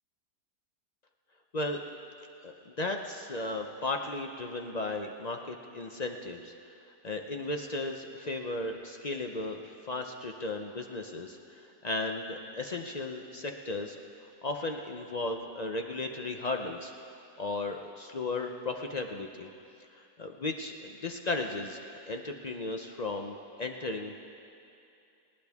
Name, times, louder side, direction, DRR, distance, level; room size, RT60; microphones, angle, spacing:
voice 1, 2.4-6.5 7.0-11.4 11.8-14.0 14.4-16.9 17.4-19.5 20.2-21.8 22.1-24.1, left 2 dB, 55° left, 3 dB, 0.4 m, -35 dB
20.0 x 17.0 x 3.6 m, 2.6 s
omnidirectional pair, 1.7 m